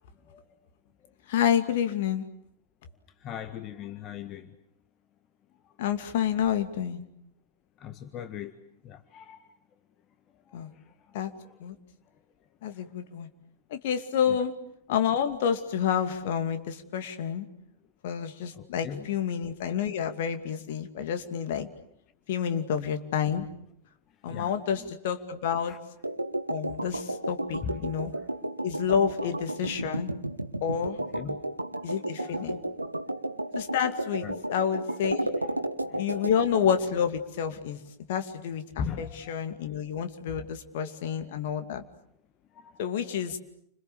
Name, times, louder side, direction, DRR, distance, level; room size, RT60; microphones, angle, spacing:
voice 1, 1.3-2.3 5.8-7.0 10.5-10.7 11.1-11.3 11.6-11.8 12.6-13.3 13.7-14.5 14.9-17.5 18.0-21.7 22.3-23.5 24.2-25.7 26.5-28.1 28.6-30.1 30.6-31.0 31.8-32.6 33.6-35.2 36.0-37.8 38.1-41.8 42.8-43.4, left 8 dB, 55° left, 2.5 m, -29 dB
voice 2, 3.2-4.5 7.8-8.5 8.8-9.4 18.6-19.1 24.3-24.5 25.7-25.8 27.6-27.9 31.1-31.4 32.2-32.4 34.2-34.4 35.8-36.3 38.8-39.3 40.8-40.9 42.5-42.7, left 7 dB, 35° left, 1.6 m, -38 dB
sound 1, 26.0-36.8, right 1 dB, 85° right, 1.3 m, -33 dB
30.0 x 26.5 x 7.1 m
figure-of-eight pair, 90°, 0 cm